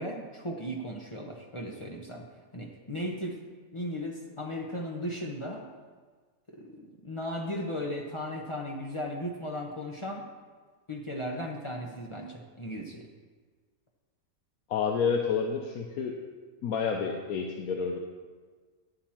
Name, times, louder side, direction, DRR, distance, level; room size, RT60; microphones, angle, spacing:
voice 1, 0.0-2.3 2.5-3.4 3.7-5.7 6.5-10.2 10.9-13.1, equal, 25° left, 0 dB, 0.8 m, -36 dB
voice 2, 14.7-16.2 16.6-18.0, left 6 dB, 85° left, 3 dB, 1.2 m, -29 dB
10.0 x 8.9 x 4.3 m, 1.5 s
omnidirectional pair, 1.5 m